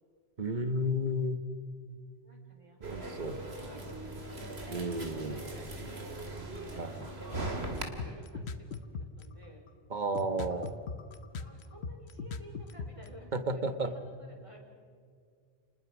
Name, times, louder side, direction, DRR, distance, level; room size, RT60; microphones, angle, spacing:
voice 1, 0.4-1.4 2.8-3.4 4.7-5.4 6.6-7.1 9.9-10.7 13.3-13.9, equal, 45° right, 9 dB, 1.5 m, -32 dB
voice 2, 2.2-6.2 6.5-8.7 8.9-9.6 10.3-10.7 11.4-14.6, right 1 dB, 30° right, -1 dB, 4.9 m, -54 dB
sound 1, 2.8-7.8, right 2 dB, 80° right, 2.8 m, -40 dB
sound 2, 7.8-9.2 9.7-9.8 10.1-13.1, left 4 dB, 80° left, 1.3 m, -38 dB
29.5 x 20.5 x 6.1 m, 2.1 s
omnidirectional pair, 1.1 m